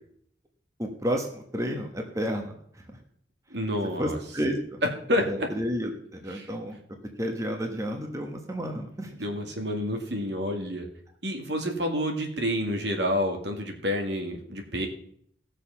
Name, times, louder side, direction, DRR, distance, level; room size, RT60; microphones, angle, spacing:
voice 1, 0.8-3.0 4.0-4.8 5.1-6.8 7.2-9.3, equal, 15° right, 3 dB, 1.2 m, -31 dB
voice 2, 3.5-4.2 5.1-5.5 6.4-6.5 9.2-10.9 11.2-14.9, equal, 75° right, 3 dB, 2.3 m, -29 dB
16.5 x 6.5 x 5.8 m, 0.65 s
head